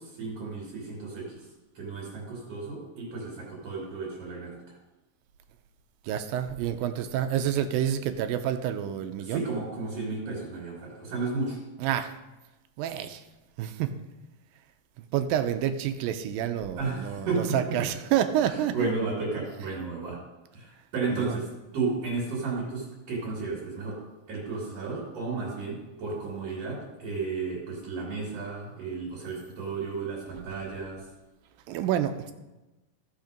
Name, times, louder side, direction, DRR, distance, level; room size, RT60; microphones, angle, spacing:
voice 1, 0.0-1.5 1.8-4.8 9.2-11.6 16.8-17.6 18.5-20.2 20.5-24.0 24.3-31.1, right 4 dB, 50° right, -4 dB, 3.6 m, -33 dB
voice 2, 6.0-9.4 11.8-12.1 12.8-13.2 13.6-13.9 15.0-18.9 21.1-21.4 31.7-32.3, right 10 dB, 85° right, 9 dB, 2.4 m, -28 dB
15.0 x 5.8 x 5.2 m, 1.1 s
omnidirectional pair, 4.1 m